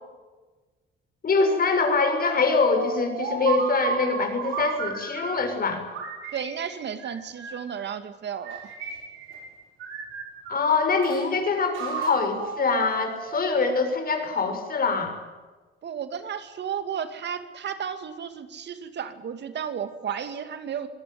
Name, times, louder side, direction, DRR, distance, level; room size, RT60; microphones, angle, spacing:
voice 1, 1.2-5.8 10.5-15.2, left 4 dB, 50° left, 6 dB, 6.7 m, -24 dB
sound 1, 2.7-5.5 5.9-7.7 8.4-9.5 9.8-11.2 11.7-13.5, right 5 dB, 85° right, 7.6 m, -33 dB
voice 2, 6.3-8.6 15.8-20.9, right 8 dB, 60° right, 10 dB, 2.5 m, -33 dB
24.5 x 18.5 x 9.6 m, 1.2 s
cardioid pair, 90°, 20 cm